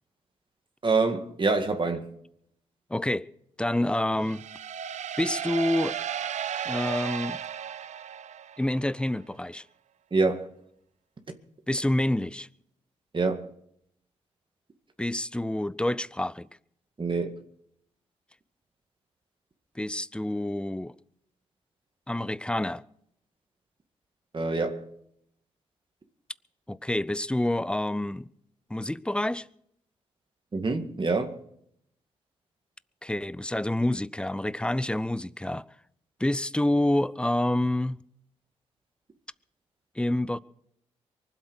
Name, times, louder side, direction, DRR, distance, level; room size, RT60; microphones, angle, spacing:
voice 1, 0.8-2.1 10.1-10.5 13.1-13.5 17.0-17.3 24.3-24.9 30.5-31.4, right 3 dB, 40° right, 2.1 m, -26 dB
voice 2, 2.9-3.3 3.6-4.4 5.2-6.0 6.7-7.4 8.6-9.6 11.7-12.5 15.0-16.5 19.8-20.9 22.1-22.8 26.7-28.3 28.7-29.5 33.0-35.6 36.2-38.0 40.0-40.4, left 1 dB, 5° left, 0.7 m, -27 dB
sound 1, 4.2-8.9, right 9 dB, 65° right, 0.7 m, -34 dB
24.0 x 8.1 x 6.4 m
supercardioid pair, 45°, 13 cm